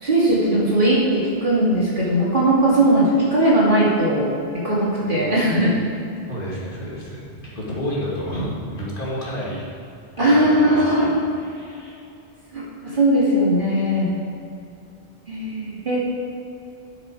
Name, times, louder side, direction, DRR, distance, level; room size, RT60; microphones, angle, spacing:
voice 1, 0.0-4.3 4.6-5.8 10.2-11.0 12.5-14.1 15.3-16.0, right 1 dB, 45° right, -7 dB, 2.7 m, -19 dB
voice 2, 5.0-5.6 6.3-9.7 10.2-11.1 11.4-12.0, equal, 50° left, -6 dB, 2.2 m, -31 dB
11.5 x 6.2 x 4.9 m, 2.6 s
omnidirectional pair, 1.1 m